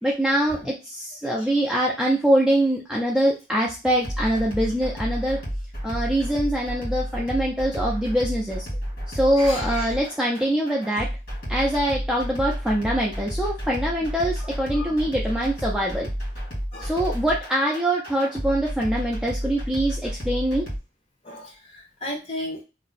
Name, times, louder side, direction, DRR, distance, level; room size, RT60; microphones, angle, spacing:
voice 1, 0.0-5.4 5.8-8.7 9.1-11.1 11.5-16.1 16.8-20.7, right 1 dB, 5° right, -3 dB, 0.4 m, -23 dB
sound 1, 4.0-20.8, equal, 50° left, 1.5 m, -31 dB
voice 2, 9.4-9.9 14.7-14.9 16.7-16.9 21.2-22.6, left 1 dB, 35° left, -1 dB, 1.0 m, -34 dB
2.7 x 2.1 x 4.0 m, 0.29 s
head